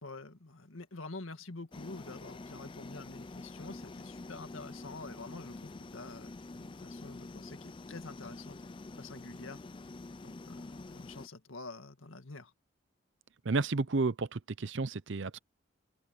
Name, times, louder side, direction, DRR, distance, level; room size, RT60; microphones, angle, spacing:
voice 1, 0.0-8.6 9.0-9.6 10.2-12.5, left 3 dB, 85° left, 1.9 m, -47 dB
sound 1, 1.7-11.3, left 2 dB, 25° left, 0.4 m, -47 dB
voice 2, 13.4-15.4, right 3 dB, 65° right, 0.7 m, -31 dB
open air
head